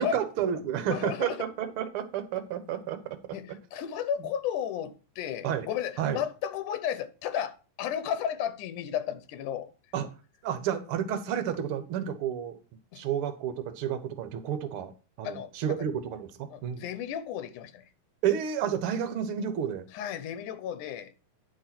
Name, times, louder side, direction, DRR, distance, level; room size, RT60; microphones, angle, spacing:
voice 1, 0.0-3.0 5.4-5.7 6.0-6.2 9.9-10.1 10.4-12.6 13.0-14.9 15.2-16.8 18.2-19.8, right 9 dB, 60° right, 1.5 m, -30 dB
voice 2, 0.9-1.4 3.3-9.7 12.9-13.0 15.2-15.5 16.5-17.8 19.9-21.1, left 9 dB, 90° left, 2.4 m, -33 dB
9.9 x 5.4 x 5.9 m
omnidirectional pair, 3.5 m